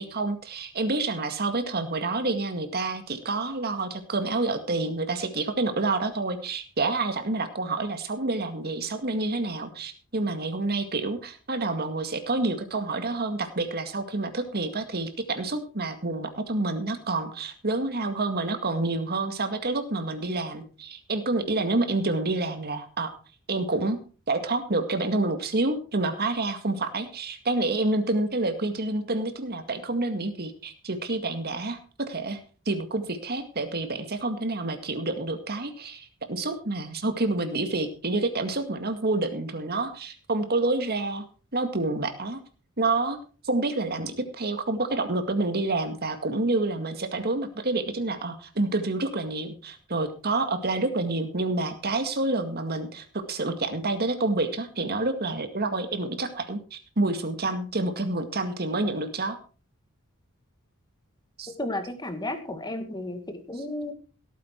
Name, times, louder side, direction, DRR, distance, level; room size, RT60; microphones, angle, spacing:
voice 1, 0.0-23.1 23.5-24.0 24.3-31.8 32.1-32.4 32.7-41.3 41.5-42.4 42.8-43.2 43.4-59.4 61.4-61.5, right 2 dB, 45° right, 8 dB, 2.0 m, -28 dB
voice 2, 61.6-63.9, left 1 dB, 20° left, 8 dB, 1.9 m, -33 dB
17.0 x 8.9 x 4.6 m, 0.37 s
head